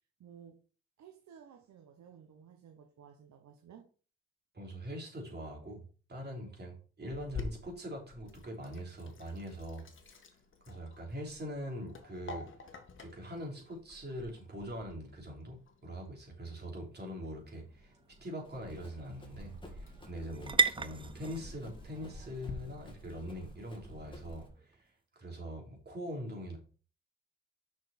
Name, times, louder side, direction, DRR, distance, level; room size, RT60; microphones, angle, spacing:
voice 1, 0.2-0.6 1.0-3.9, right 8 dB, 70° right, 3 dB, 1.3 m, -55 dB
voice 2, 4.5-5.8 6.1-10.2 10.7-12.5 13.0-17.9 18.2-26.6, equal, 35° right, 0 dB, 3.7 m, -43 dB
Sink (filling or washing), 7.1-22.5, left 5 dB, 40° left, 1.8 m, -51 dB
sound 1, 17.1-24.8, right 4 dB, 15° right, 0.5 m, -38 dB
Run, 18.4-24.5, equal, 15° left, 2.4 m, -51 dB
6.4 x 6.1 x 4.4 m, 0.38 s
cardioid pair, 90°, 30 cm